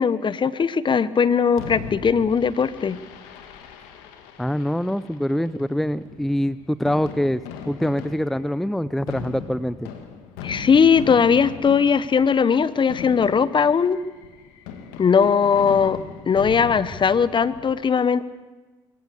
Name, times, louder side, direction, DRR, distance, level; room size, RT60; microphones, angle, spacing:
voice 1, 0.0-3.0 10.4-14.0 15.0-16.0 16.3-18.2, left 6 dB, 40° left, 16 dB, 1.1 m, -19 dB
Fireworks, 1.6-17.7, left 7 dB, 80° left, 2.0 m, -39 dB
voice 2, 4.4-7.4 7.7-9.9, equal, ahead, 16 dB, 0.6 m, -24 dB
22.5 x 16.0 x 8.2 m, 1.2 s
hypercardioid pair, 60°, 13 cm